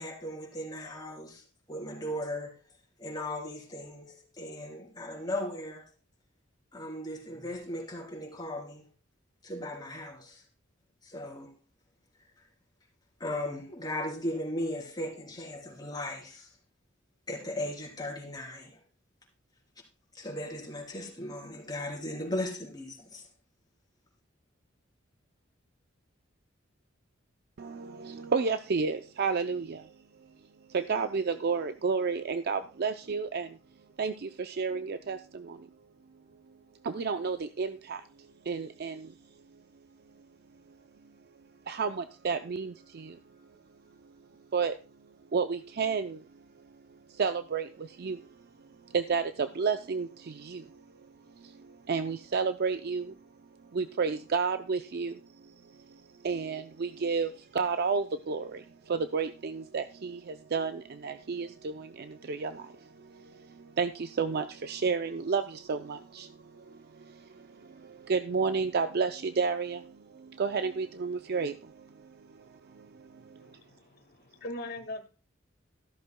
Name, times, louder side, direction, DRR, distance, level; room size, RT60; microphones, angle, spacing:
voice 1, 0.0-2.6 3.0-5.9 6.7-8.9 9.4-10.4 11.0-11.5 13.2-16.5 17.3-18.8 20.1-23.3, left 1 dB, 20° left, 3.4 m, -37 dB
voice 2, 27.6-29.9 30.7-33.6 34.0-35.7 36.8-38.0 38.4-39.1 41.7-43.2 44.5-44.8 45.3-46.3 47.1-48.3 48.9-50.8 51.4-53.2 53.7-73.5, right 5 dB, 50° right, 0.5 m, -32 dB
voice 3, 73.4-75.1, left 1 dB, 50° left, 1.7 m, -41 dB
14.0 x 12.5 x 2.2 m
head